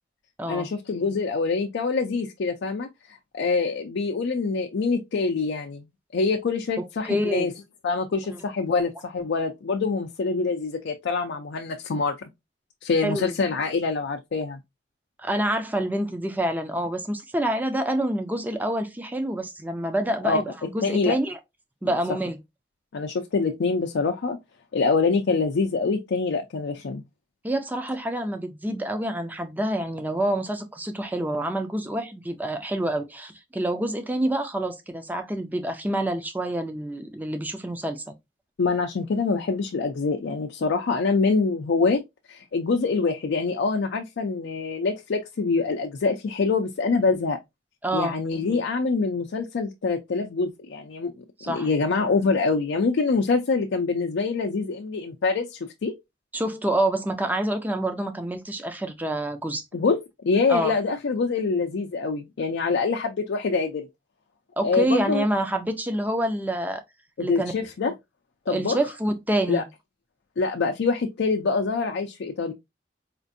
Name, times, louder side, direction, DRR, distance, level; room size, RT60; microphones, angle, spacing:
voice 1, 0.5-5.9 6.1-7.5 7.8-12.2 12.8-14.6 20.2-20.4 20.8-21.2 21.8-21.9 22.9-24.4 24.7-27.0 38.6-42.0 42.3-47.4 47.9-51.1 51.5-55.9 59.7-63.9 64.6-65.2 67.2-67.9 68.5-68.8 69.5-69.6 70.4-72.5, left 4 dB, 85° left, 0.4 m, -25 dB
voice 2, 7.0-7.5 13.0-13.3 15.2-21.3 21.8-22.4 27.4-38.0 47.8-48.2 51.4-51.7 56.3-59.6 60.5-60.7 64.6-66.8 67.2-67.5 68.5-69.6, right 1 dB, 10° right, 0.5 m, -27 dB
4.3 x 2.5 x 2.5 m
head